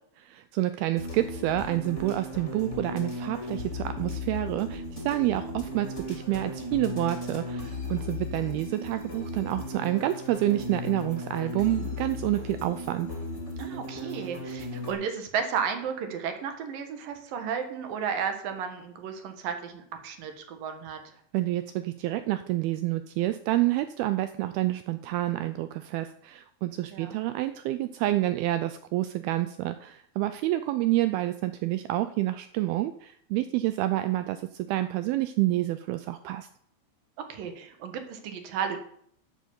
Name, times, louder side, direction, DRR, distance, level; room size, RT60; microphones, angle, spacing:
voice 1, 0.3-13.1 21.3-36.5, right 15 dB, 90° right, 11 dB, 2.1 m, -28 dB
sound 1, 1.0-14.9, left 2 dB, 20° left, 2.2 m, -36 dB
voice 2, 13.6-21.0 26.9-27.2 37.3-38.8, right 7 dB, 60° right, 6 dB, 2.7 m, -33 dB
10.0 x 9.2 x 7.0 m, 0.66 s
omnidirectional pair, 5.0 m